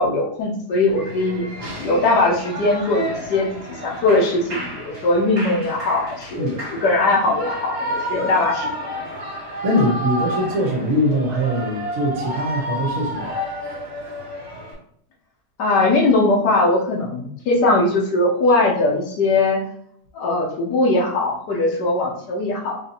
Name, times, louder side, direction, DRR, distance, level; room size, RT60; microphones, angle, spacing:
voice 1, 0.0-1.5 1.8-8.9 15.6-19.6 20.1-22.8, left 2 dB, 75° left, -2 dB, 1.3 m, -20 dB
Shout / Cheering, 0.9-14.7, equal, 40° right, 1.2 m, -30 dB
voice 2, 9.6-13.4, equal, 60° right, -2 dB, 1.0 m, -22 dB
4.1 x 2.8 x 2.7 m, 0.69 s
omnidirectional pair, 1.9 m